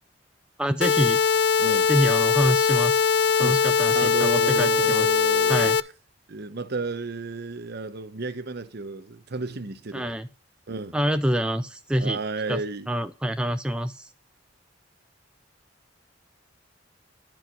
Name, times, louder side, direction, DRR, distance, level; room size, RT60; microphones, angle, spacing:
voice 1, 0.6-1.2 1.9-3.1 3.4-5.1 5.5-5.8 9.9-10.3 10.9-12.2 12.5-12.6 12.9-14.1, equal, 5° right, 0.4 m, -26 dB
sound 1, 0.8-5.8, left 6 dB, 60° left, 0.4 m, -21 dB
voice 2, 1.6-1.9 3.4-5.7 6.3-10.1 10.7-11.0 12.0-12.9, right 3 dB, 60° right, 0.9 m, -32 dB
10.5 x 4.6 x 5.1 m
head